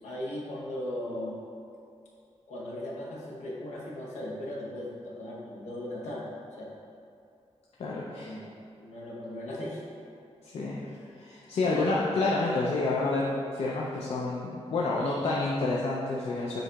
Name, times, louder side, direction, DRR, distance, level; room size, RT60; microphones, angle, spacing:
voice 1, 0.0-1.4 2.5-6.2 6.5-6.7 8.2-8.5 8.8-9.8 10.8-11.1 11.6-12.0, left 1 dB, 80° left, -5 dB, 0.9 m, -37 dB
voice 2, 7.8-8.3 10.4-10.8 11.2-13.2 13.5-16.6, left 3 dB, 60° left, -5 dB, 0.4 m, -29 dB
7.6 x 2.8 x 2.3 m, 2.5 s
wide cardioid pair, 180°, 12 cm